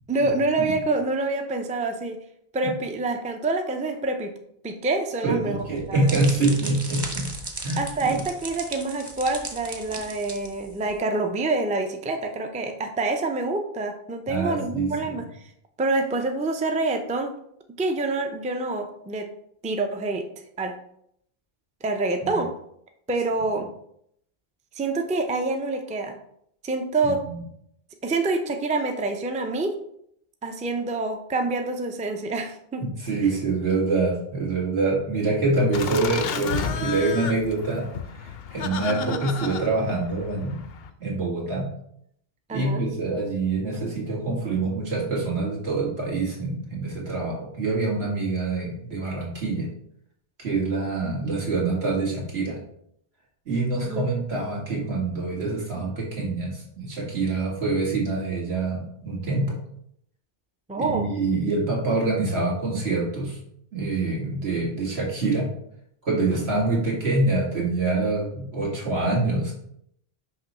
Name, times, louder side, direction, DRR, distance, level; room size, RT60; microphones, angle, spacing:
voice 1, 0.1-2.2 2.5-4.3 4.6-6.2 7.8-15.2 15.8-17.3 17.8-19.3 19.6-20.3 20.6-20.8 21.8-22.5 23.1-23.7 24.8-26.2 26.6-27.2 28.0-29.7 30.4-32.8 33.2-33.3 38.9-39.2 42.5-42.8 53.9-54.1 60.7-61.0, right 3 dB, 10° right, 4 dB, 0.3 m, -27 dB
voice 2, 5.2-7.3 7.6-8.2 14.3-15.2 22.2-22.3 27.0-27.4 32.8-37.9 38.2-40.6 41.0-41.7 42.5-49.7 50.4-52.6 53.5-59.6 60.8-63.4 63.7-65.5 66.0-69.5, right 3 dB, 85° right, -3 dB, 2.0 m, -25 dB
sound 1, 5.6-11.0, right 2 dB, 25° right, 0.7 m, -37 dB
Laughter, 35.7-40.9, left 7 dB, 75° left, 0.8 m, -32 dB
5.9 x 3.0 x 5.4 m, 0.71 s
omnidirectional pair, 1.0 m